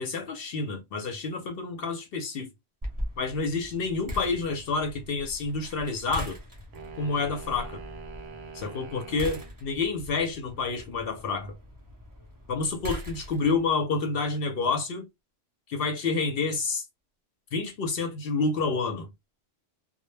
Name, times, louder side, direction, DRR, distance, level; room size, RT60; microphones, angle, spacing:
voice 1, 0.0-2.5 3.2-6.4 7.0-7.8 8.5-11.5 12.5-15.1 15.7-16.8 17.5-19.1, left 4 dB, 60° left, 0.7 m, -29 dB
sound 1, 2.8-13.7, equal, 20° right, 0.6 m, -41 dB
sound 2, 6.7-9.6, right 5 dB, 80° right, 0.9 m, -44 dB
2.1 x 2.0 x 3.1 m
omnidirectional pair, 1.3 m